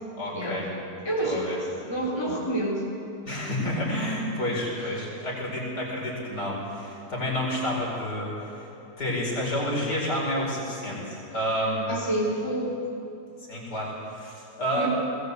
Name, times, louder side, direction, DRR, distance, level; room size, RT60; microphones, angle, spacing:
voice 1, 0.1-0.7 1.2-1.6 3.3-8.7 9.0-11.9 13.5-14.9, equal, 65° left, -4 dB, 5.5 m, -29 dB
voice 2, 1.0-1.6 1.9-2.9 4.8-4.9 11.9-12.8 14.8-14.9, right 1 dB, 15° left, -5 dB, 4.5 m, -28 dB
21.0 x 18.0 x 8.2 m, 2.8 s
omnidirectional pair, 1.9 m